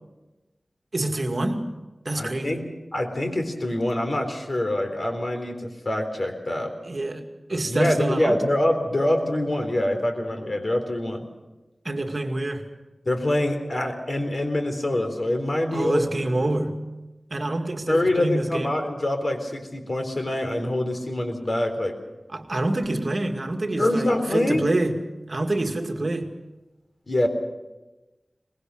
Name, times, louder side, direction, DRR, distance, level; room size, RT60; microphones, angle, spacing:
voice 1, 0.9-1.6 2.0-2.7 6.9-8.4 11.8-12.7 15.7-16.8 17.3-18.8 22.3-25.0 25.3-26.3, right 2 dB, 50° right, 4 dB, 2.2 m, -27 dB
voice 2, 2.2-2.6 2.9-6.7 7.7-11.3 13.1-16.0 17.9-21.9 23.8-24.7 27.1-27.3, left 1 dB, 50° left, 5 dB, 3.9 m, -25 dB
23.5 x 20.5 x 6.5 m, 1.1 s
wide cardioid pair, 75°, 0 cm